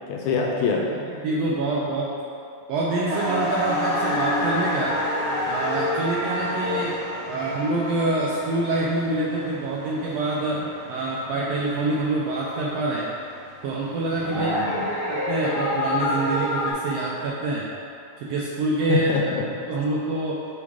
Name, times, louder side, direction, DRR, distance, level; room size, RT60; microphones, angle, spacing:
voice 1, 0.1-0.9 6.8-6.9 14.2-14.9 18.9-19.5, left 5 dB, 80° left, 0 dB, 1.9 m, -25 dB
voice 2, 1.1-2.2 2.7-5.0 5.5-7.0 7.3-13.1 13.6-17.7 18.2-19.1 19.5-20.4, right 2 dB, 85° right, -4 dB, 1.4 m, -26 dB
sound 1, 3.1-16.7, equal, 45° right, 0.7 m, -28 dB
6.1 x 3.5 x 4.7 m, 2.6 s
omnidirectional pair, 3.5 m